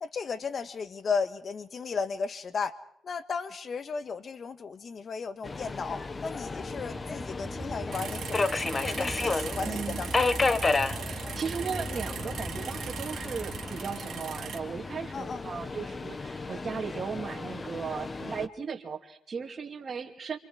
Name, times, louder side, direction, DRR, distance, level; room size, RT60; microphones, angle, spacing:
voice 1, 0.0-2.7 3.0-10.6 15.1-15.5, left 5 dB, 45° left, 11 dB, 1.4 m, -35 dB
Subway metro underground, 5.4-18.5, left 3 dB, 30° left, 0.9 m, -33 dB
sound 1, 6.5-13.7, right 2 dB, 10° right, 5.7 m, -42 dB
sound 2, 7.9-14.6, right 8 dB, 65° right, 2.1 m, -40 dB
voice 2, 9.6-10.0 11.0-20.4, right 5 dB, 40° right, 2 dB, 2.5 m, -36 dB
28.5 x 25.5 x 4.8 m, 0.66 s
cardioid pair, 90°, 0 cm